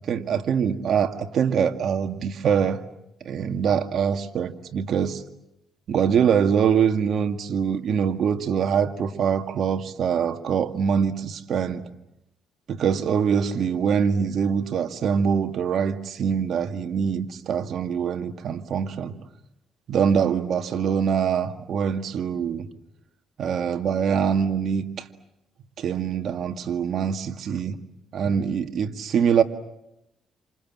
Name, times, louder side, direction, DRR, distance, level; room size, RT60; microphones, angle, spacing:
voice 1, 0.0-2.8 3.2-5.2 5.9-11.8 12.7-19.1 19.9-22.7 23.4-25.0 25.8-27.8 28.1-29.4, right 7 dB, 65° right, 7 dB, 2.1 m, -24 dB
28.0 x 27.5 x 7.6 m, 0.84 s
cardioid pair, 90°, 0 cm